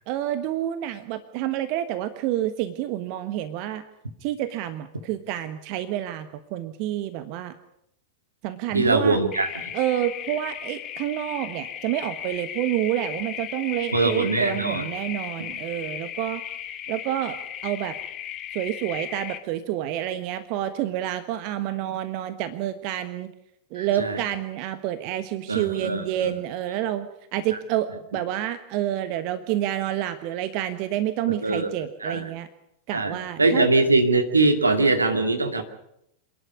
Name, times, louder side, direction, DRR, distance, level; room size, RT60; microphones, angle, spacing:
voice 1, 0.1-3.8 4.2-7.5 8.4-9.2 9.7-16.4 16.9-17.4 17.6-18.0 18.5-23.3 23.7-27.1 27.3-32.5 32.9-33.7, right 12 dB, 45° right, 12 dB, 1.2 m, -28 dB
voice 2, 8.7-9.5 13.9-14.9 23.8-24.2 25.5-26.3 31.3-31.7 32.0-32.2 32.9-35.6, right 2 dB, 80° right, 7 dB, 2.3 m, -22 dB
sound 1, 9.3-19.4, left 10 dB, 30° left, 2.0 m, -36 dB
28.0 x 11.0 x 9.7 m, 0.79 s
figure-of-eight pair, 90°, 0 cm